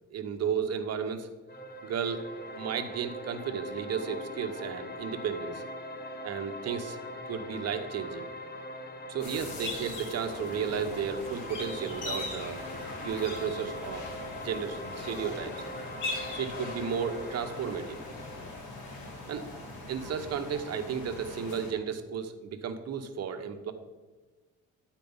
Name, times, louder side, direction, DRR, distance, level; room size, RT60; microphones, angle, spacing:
voice 1, 0.1-1.3 1.8-2.2 2.5-5.6 6.2-7.0 7.3-8.3 9.1-12.6 13.0-14.1 14.4-15.6 16.3-18.0 19.3-19.5 19.9-23.7, right 7 dB, 55° right, 7 dB, 0.9 m, -33 dB
sound 1, 1.5-18.5, left 1 dB, 35° left, 1.0 m, -42 dB
sound 2, 9.2-21.7, left 2 dB, 80° left, 2.5 m, -40 dB
9.2 x 4.5 x 5.4 m, 1.3 s
cardioid pair, 90°, 30 cm